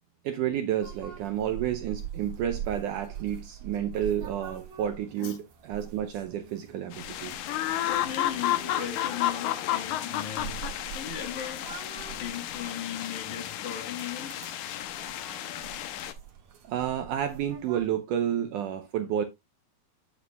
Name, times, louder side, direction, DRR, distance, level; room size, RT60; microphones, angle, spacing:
voice 1, 0.2-7.3 16.6-19.2, right 10 dB, 80° right, 1.9 m, -30 dB
sound 1, 0.8-17.9, right 9 dB, 55° right, 2.7 m, -44 dB
sound 2, 6.9-16.1, left 13 dB, 80° left, 1.8 m, -32 dB
voice 2, 7.9-10.7 10.9-11.8 12.1-14.6, left 9 dB, 60° left, 2.7 m, -38 dB
9.1 x 8.3 x 2.3 m
omnidirectional pair, 4.3 m